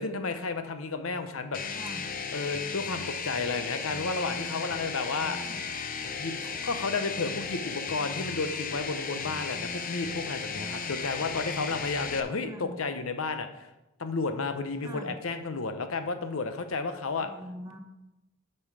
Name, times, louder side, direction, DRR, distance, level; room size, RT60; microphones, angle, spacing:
voice 1, 0.0-1.6 2.3-5.4 6.2-13.7 14.0-17.3, left 4 dB, 85° left, 8 dB, 0.8 m, -32 dB
sound 1, 1.5-12.2, left 5 dB, 45° left, 0.6 m, -35 dB
voice 2, 1.7-2.0 5.4-5.7 12.4-12.7 14.8-15.1 17.2-17.8, equal, 15° right, 4 dB, 0.9 m, -43 dB
8.7 x 5.6 x 4.8 m, 0.98 s
head